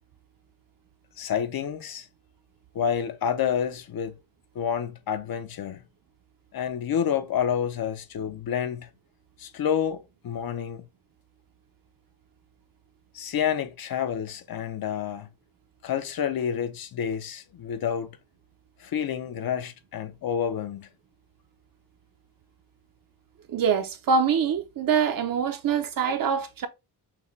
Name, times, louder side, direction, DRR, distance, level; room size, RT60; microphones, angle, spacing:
voice 1, 1.2-2.1 2.7-4.2 4.5-5.8 6.5-8.9 9.4-10.9 13.1-15.3 15.8-18.2 18.8-20.9, left 8 dB, 60° left, 0.7 m, -29 dB
voice 2, 23.5-26.7, right 6 dB, 55° right, 0.6 m, -24 dB
6.0 x 2.2 x 3.1 m
wide cardioid pair, 125°, 40 cm